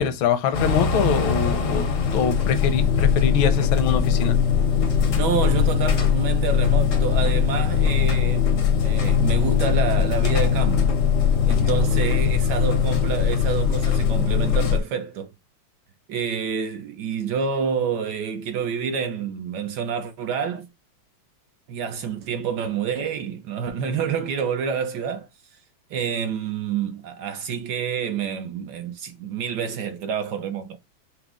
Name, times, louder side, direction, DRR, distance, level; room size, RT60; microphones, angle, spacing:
voice 1, 0.0-4.4, left 7 dB, 80° left, 1.5 m, -24 dB
sound 1, 0.5-14.8, left 7 dB, 65° left, 0.8 m, -20 dB
voice 2, 5.1-10.9 11.5-15.3 16.1-20.7 21.7-25.3 25.9-30.8, right 6 dB, 70° right, 1.0 m, -28 dB
5.8 x 2.0 x 3.6 m
omnidirectional pair, 2.2 m